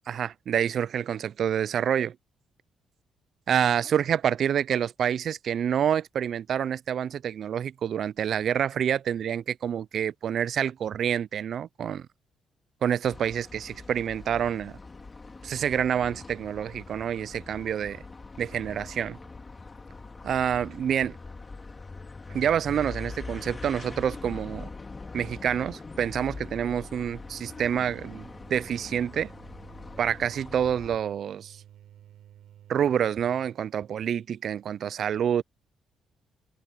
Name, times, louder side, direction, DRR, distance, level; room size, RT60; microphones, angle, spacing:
voice 1, 0.1-2.2 3.5-12.1 12.8-14.8 15.4-18.0 18.4-19.2 20.2-21.2 22.3-24.7 25.1-29.3 30.0-31.6 32.7-35.4, right 9 dB, 60° right, 0.3 m, -27 dB
sound 1, 13.0-31.0, left 3 dB, 25° left, 2.1 m, -43 dB
sound 2, 25.9-33.6, right 11 dB, 80° right, 5.8 m, -53 dB
cardioid pair, 90°, 0 cm